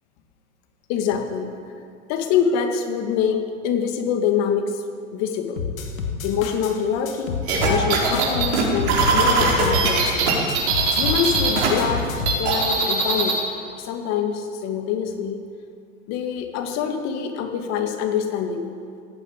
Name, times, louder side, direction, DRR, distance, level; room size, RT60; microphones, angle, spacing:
voice 1, 0.9-1.6 2.1-4.8 5.1-5.6 6.2-10.2 11.0-13.4 13.8-15.4 16.1-18.7, left 7 dB, 40° left, 6 dB, 2.0 m, -25 dB
sound 1, 5.6-6.7 7.1-10.2 10.5-12.4, left 5 dB, 75° left, 2.6 m, -28 dB
sound 2, 7.5-11.7 12.0-13.4, right 4 dB, 55° right, 5.1 m, -20 dB
17.5 x 9.3 x 8.5 m, 2.3 s
hypercardioid pair, 120°, 40 cm